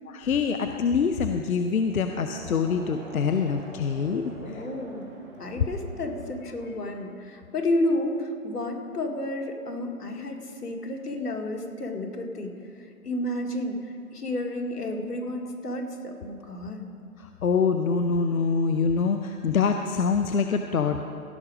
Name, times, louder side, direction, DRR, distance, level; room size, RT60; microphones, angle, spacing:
voice 1, 0.1-4.6 17.4-21.0, left 5 dB, 65° left, 6 dB, 0.7 m, -25 dB
Crowd, 1.7-6.9, right 2 dB, 35° right, 1.7 m, -46 dB
voice 2, 4.4-5.1 5.4-16.9, left 1 dB, 90° left, 2 dB, 2.1 m, -31 dB
16.0 x 6.3 x 4.9 m, 2.4 s
hypercardioid pair, 170°, 45 cm